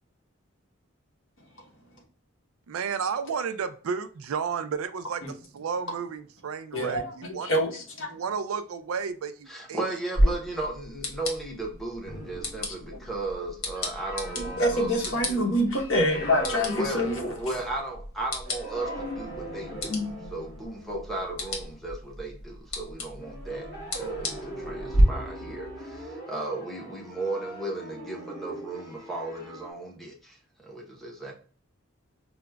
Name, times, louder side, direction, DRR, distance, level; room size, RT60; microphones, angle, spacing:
voice 1, 2.7-7.6 8.1-10.0, right 6 dB, 85° right, 11 dB, 0.4 m, -32 dB
voice 2, 6.7-8.1 10.2-10.3 12.9-13.0 14.3-17.6, equal, 65° left, 0 dB, 1.0 m, -27 dB
voice 3, 9.5-15.7 16.8-19.9 20.3-23.7 24.0-24.3 24.6-26.0 26.3-30.1 30.7-31.3, right 2 dB, ahead, -1 dB, 0.7 m, -35 dB
sound 1, 10.1-25.0, equal, 90° left, 1.1 m, -33 dB
sound 2, 12.0-18.0 18.4-22.4 23.2-29.7, equal, 50° left, 1.3 m, -40 dB
4.8 x 2.1 x 2.2 m, 0.41 s
head